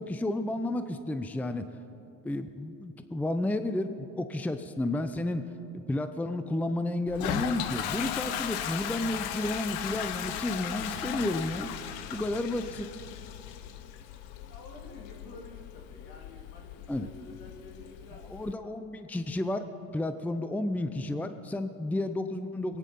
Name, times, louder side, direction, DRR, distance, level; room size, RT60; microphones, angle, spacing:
voice 1, 0.0-1.6 2.2-5.4 5.9-11.7 12.1-12.9 16.9-17.1 18.3-19.6 19.9-22.8, left 1 dB, 5° left, 9 dB, 0.6 m, -31 dB
Toilet flush, 7.1-18.5, left 10 dB, 85° left, 0.9 m, -37 dB
voice 2, 14.5-18.7, left 3 dB, 70° left, 0 dB, 3.1 m, -50 dB
22.5 x 9.8 x 5.5 m, 2.8 s
supercardioid pair, 95°, 35 cm